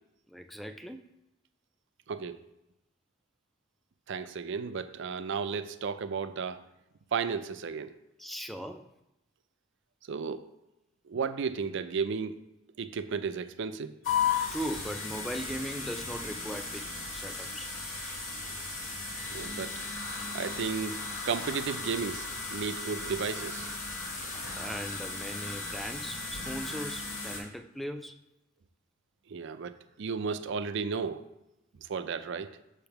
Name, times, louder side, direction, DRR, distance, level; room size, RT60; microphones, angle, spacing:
voice 1, 0.3-1.0 8.2-8.9 14.5-16.9 17.1-17.8 24.3-28.2, equal, ahead, 8 dB, 0.3 m, -39 dB
voice 2, 2.1-2.4 4.1-6.6 7.1-8.0 10.1-10.5 11.1-12.4 12.8-14.0 18.5-18.6 19.3-19.7 20.3-21.0 21.2-23.7 24.2-24.4 29.3-31.3 31.8-32.5, right 5 dB, 65° right, 11 dB, 0.4 m, -34 dB
sound 1, 14.0-27.4, left 4 dB, 75° left, 1.6 m, -36 dB
6.3 x 3.5 x 5.8 m, 0.89 s
head